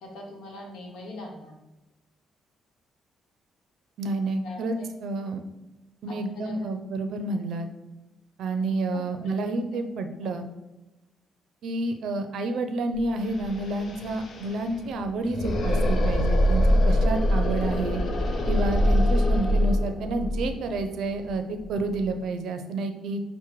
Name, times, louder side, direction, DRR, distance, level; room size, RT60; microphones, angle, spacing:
voice 1, 0.0-1.5 4.4-4.9 6.1-6.6 8.6-9.4 10.2-10.3, left 2 dB, 85° left, 0 dB, 0.9 m, -42 dB
voice 2, 4.0-5.4 6.0-7.7 8.4-10.5 11.6-18.0 18.5-23.2, right 2 dB, 75° right, 7 dB, 0.4 m, -29 dB
sound 1, 12.9-13.0 13.2-22.1, left 1 dB, 55° left, 0.6 m, -24 dB
5.8 x 2.1 x 3.1 m, 1.0 s
cardioid pair, 90°, 0 cm